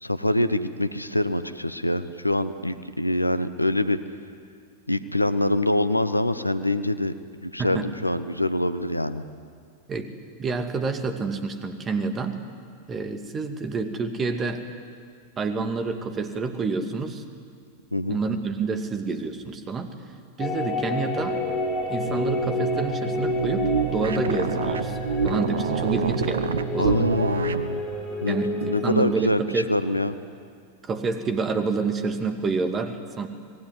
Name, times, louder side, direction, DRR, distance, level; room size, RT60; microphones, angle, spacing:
voice 1, 0.0-4.0 4.9-7.1 7.4-9.2 17.9-18.2 26.8-27.8 28.2-30.2, left 1 dB, 85° left, 12 dB, 0.9 m, -25 dB
voice 2, 10.4-12.4 12.9-14.6 15.4-17.2 18.1-19.9 20.4-21.4 21.9-25.0 25.2-27.1 28.3-29.7 30.8-33.3, right 4 dB, 25° right, 7 dB, 2.2 m, -28 dB
sound 1, 20.4-29.1, left 2 dB, 30° left, 8.0 m, -29 dB
sound 2, 22.0-27.7, right 6 dB, 65° right, 1.0 m, -28 dB
25.5 x 20.0 x 9.8 m, 2.2 s
figure-of-eight pair, 90°, 0 cm